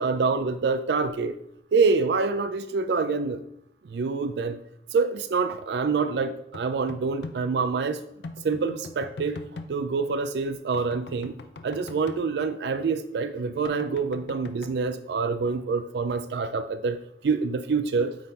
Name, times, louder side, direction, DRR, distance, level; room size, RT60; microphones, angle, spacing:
voice 1, 0.0-1.4 1.7-3.4 3.8-4.6 4.9-8.0 8.4-9.4 9.7-11.3 11.6-18.2, right 4 dB, 75° right, 11 dB, 0.4 m, -26 dB
sound 1, 6.5-7.4 8.2-9.7 10.7-12.2 13.6-14.7, left 3 dB, 80° left, 0.5 m, -41 dB
8.6 x 3.6 x 3.9 m, 0.77 s
head